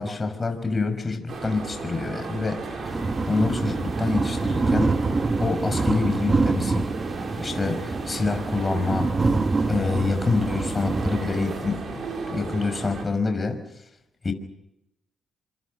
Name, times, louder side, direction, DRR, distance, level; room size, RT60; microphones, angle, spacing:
voice 1, 0.0-2.8 3.3-4.9 5.4-6.9 7.4-9.1 9.7-12.0 12.3-13.6 14.2-14.3, left 3 dB, 25° left, 6 dB, 5.8 m, -26 dB
sound 1, 1.3-13.1, right 4 dB, 55° right, 6.8 m, -34 dB
sound 2, 2.8-11.6, right 3 dB, 30° right, 1.7 m, -26 dB
27.0 x 27.0 x 5.5 m, 0.85 s
cardioid pair, 90°, 0 cm